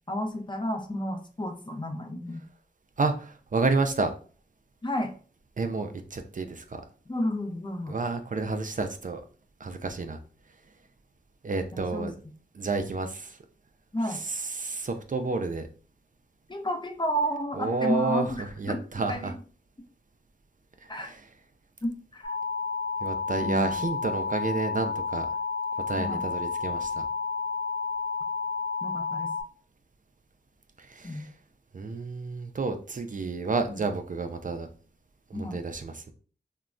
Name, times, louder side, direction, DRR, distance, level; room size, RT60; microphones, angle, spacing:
voice 1, 0.1-2.4 4.8-5.1 7.1-8.0 11.7-12.1 13.9-14.2 16.5-18.8 19.1-19.3 20.9-21.1 21.8-22.3 23.4-23.9 26.0-26.2 28.8-29.3 31.0-31.3 33.7-33.8 35.3-35.6, equal, 25° left, 5 dB, 0.5 m, -31 dB
voice 2, 3.0-4.1 5.6-6.8 7.9-9.2 9.6-10.2 11.4-12.2 12.5-13.4 14.1-15.7 17.5-19.3 20.9-21.2 23.0-25.3 25.9-27.0 30.8-31.3 31.7-34.7 35.3-36.1, right 3 dB, 50° right, 7 dB, 0.4 m, -30 dB
sound 1, 22.2-29.4, left 4 dB, 90° left, 0.5 m, -31 dB
3.0 x 2.2 x 2.5 m, 0.40 s
wide cardioid pair, 45°, 18 cm